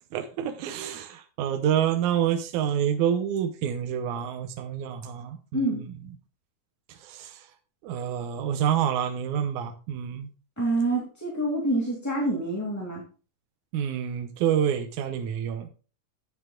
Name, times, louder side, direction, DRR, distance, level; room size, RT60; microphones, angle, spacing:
voice 1, 0.1-5.8 6.9-7.5 7.8-10.3 13.7-15.7, right 9 dB, 75° right, 2.1 m, -28 dB
voice 2, 10.6-13.0, right 1 dB, 5° left, 1.7 m, -27 dB
11.0 x 9.0 x 2.4 m
omnidirectional pair, 3.8 m